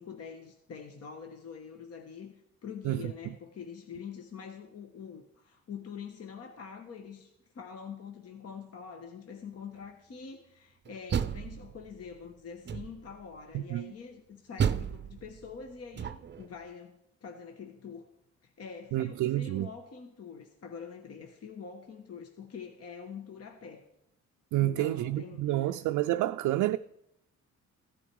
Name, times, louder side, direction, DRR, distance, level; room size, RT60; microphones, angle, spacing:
voice 1, 0.0-2.3 2.6-18.1 18.4-23.9 24.6-25.8, left 6 dB, 55° left, 1.4 m, -45 dB
Door, 10.8-12.1 12.6-13.2 14.6-16.5, right 8 dB, 35° right, 0.6 m, -33 dB
voice 2, 13.5-13.9 18.9-19.7 24.5-26.8, right 15 dB, 85° right, 0.5 m, -29 dB
15.5 x 9.9 x 4.7 m
cardioid pair, 90°, 30 cm